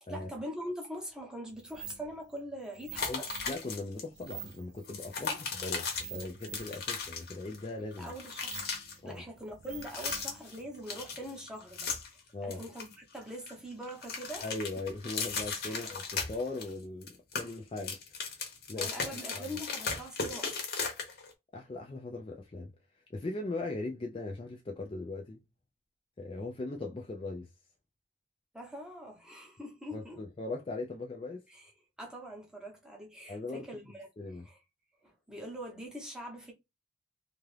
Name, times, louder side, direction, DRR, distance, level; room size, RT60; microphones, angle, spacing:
voice 1, 0.0-3.3 5.3-5.4 8.0-8.7 9.0-11.9 12.4-14.5 14.8-14.9 15.7-16.0 18.8-20.6 28.5-30.2 31.5-31.7 32.0-34.6 35.0-36.5, equal, 5° right, 0.8 m, -43 dB
sound 1, 1.5-12.0, right 9 dB, 40° right, 0.4 m, -50 dB
sound 2, 3.0-4.0 4.3-4.4 4.8-7.7 7.9-8.9 9.7-10.6 10.9-12.2 12.5-13.5 13.8-16.7 17.0-21.3, left 5 dB, 55° left, 0.9 m, -37 dB
voice 2, 3.1-8.1 9.0-9.2 12.3-12.6 14.4-18.2 18.7-18.9 19.3-19.4 21.5-22.7 23.1-25.4 26.2-27.5 29.9-31.4 33.3-33.7 34.2-34.4, left 2 dB, 30° left, 0.4 m, -39 dB
2.8 x 2.4 x 3.2 m
head